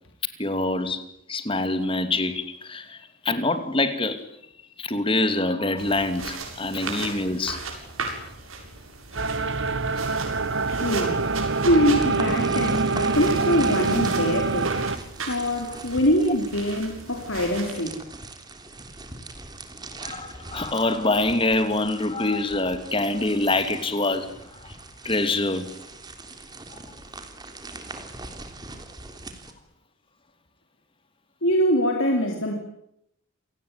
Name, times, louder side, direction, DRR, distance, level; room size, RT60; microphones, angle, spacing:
voice 1, 0.4-1.0 1.3-3.0 3.2-4.2 4.8-7.6 20.0-24.7 25.0-25.8 26.7-26.8, left 2 dB, 25° left, 10 dB, 2.6 m, -25 dB
sound 1, 5.8-17.7, right 4 dB, 85° right, 7.8 m, -37 dB
sound 2, 9.2-15.0, right 3 dB, 60° right, 1.0 m, -25 dB
voice 2, 10.7-11.2 11.6-14.8 15.3-17.9 31.4-32.5, equal, 70° left, 2 dB, 3.9 m, -23 dB
sound 3, 11.9-29.5, right 2 dB, 20° right, 3.3 m, -41 dB
28.5 x 18.5 x 9.8 m, 0.77 s
head